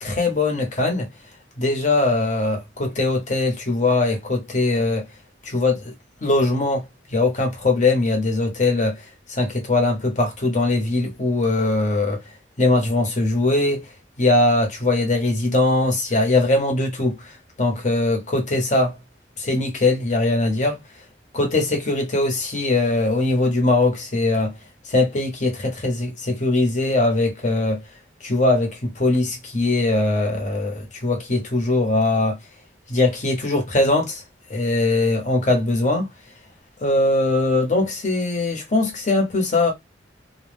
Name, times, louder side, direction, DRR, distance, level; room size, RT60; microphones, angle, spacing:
voice 1, 0.0-1.1 1.6-5.1 5.4-5.9 6.2-6.8 7.1-9.0 9.3-12.2 12.6-13.9 14.2-17.2 17.6-19.0 19.4-20.8 21.3-24.5 24.9-27.8 28.2-32.4 32.9-34.2 34.5-36.1 36.8-39.7, left 2 dB, 40° left, 0.8 m, -21 dB
2.2 x 2.0 x 3.2 m
head